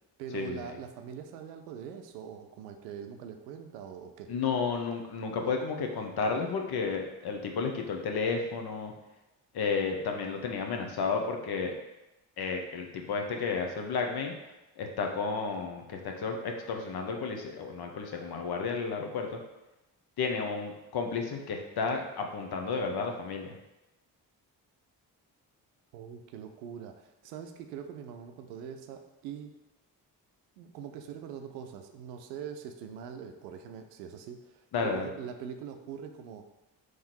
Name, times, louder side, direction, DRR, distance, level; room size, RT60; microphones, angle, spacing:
voice 1, 0.2-4.3 25.9-29.5 30.6-36.4, right 7 dB, 85° right, 6 dB, 0.5 m, -43 dB
voice 2, 4.3-8.9 9.5-11.7 12.4-14.3 14.8-19.4 20.2-23.5 34.7-35.1, left 5 dB, 50° left, 3 dB, 0.9 m, -32 dB
3.6 x 3.2 x 4.3 m, 0.98 s
hypercardioid pair, 40°, 47 cm